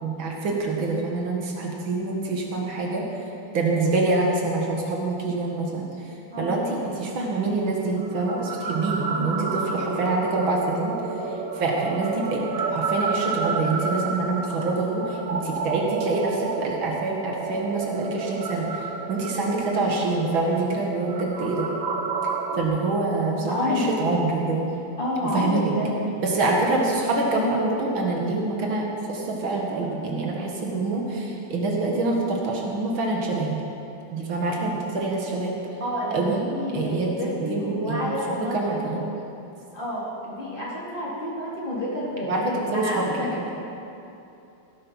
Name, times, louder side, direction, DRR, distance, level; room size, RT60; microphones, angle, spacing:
voice 1, 0.0-3.1 3.5-11.0 11.2-21.8 22.5-24.7 25.2-25.7 26.2-33.6 34.1-35.6 36.1-36.4 36.7-38.0 38.3-39.0 42.3-43.4, right 3 dB, 80° right, -1 dB, 2.5 m, -26 dB
sound 1, 7.9-22.6, right 4 dB, 55° right, 1.0 m, -31 dB
voice 2, 23.5-23.9 25.0-25.9 35.8-38.8 39.7-42.4 42.7-43.4, left 1 dB, 25° left, -7 dB, 3.2 m, -29 dB
17.0 x 9.0 x 5.6 m, 2.8 s
omnidirectional pair, 2.2 m